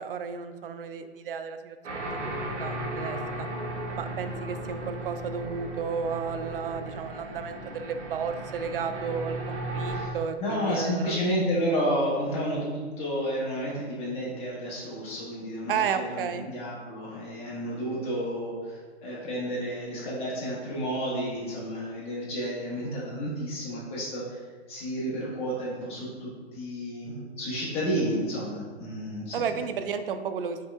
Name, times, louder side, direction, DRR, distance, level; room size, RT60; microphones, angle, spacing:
voice 1, 0.0-3.5 3.9-11.2 15.7-16.5 29.3-30.6, right 6 dB, 55° right, 10 dB, 0.4 m, -33 dB
sound 1, 1.8-10.1, right 1 dB, 80° right, 1.1 m, -35 dB
voice 2, 9.9-24.4 24.7-29.6, equal, 15° left, -6 dB, 1.1 m, -31 dB
5.5 x 3.8 x 2.3 m, 1.4 s
hypercardioid pair, 145°, 34 cm